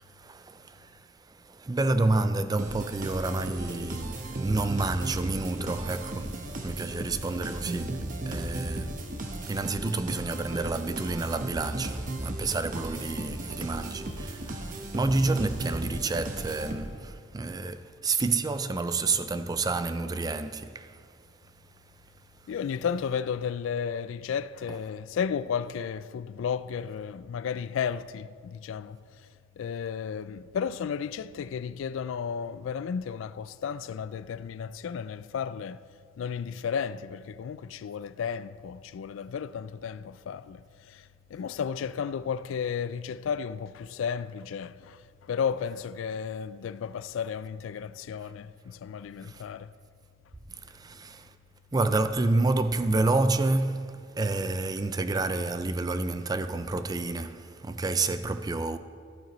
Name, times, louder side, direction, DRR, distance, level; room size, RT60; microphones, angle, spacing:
voice 1, 0.1-1.0 1.3-9.0 9.5-21.0 49.2-49.4 50.6-51.3 51.7-58.8, right 3 dB, 20° right, 0.4 m, -29 dB
sound 1, 2.6-17.2, right 1 dB, 45° right, 0.9 m, -36 dB
voice 2, 22.5-29.0 29.6-35.8 36.2-49.7, left 7 dB, 75° left, 0.3 m, -33 dB
14.5 x 9.1 x 3.1 m
head